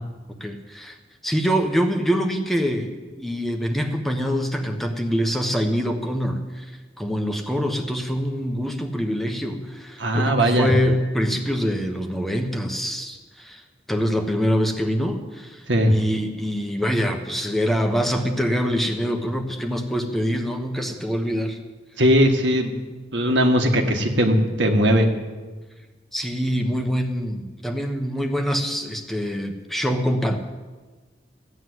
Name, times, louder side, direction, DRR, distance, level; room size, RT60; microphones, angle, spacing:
voice 1, 0.4-1.0 1.2-13.6 13.9-21.6 26.1-30.4, equal, ahead, 4 dB, 1.1 m, -25 dB
voice 2, 10.0-10.7 15.7-15.9 22.0-22.7 23.1-25.1, equal, 75° right, 3 dB, 1.9 m, -19 dB
15.5 x 9.7 x 8.0 m, 1.3 s
head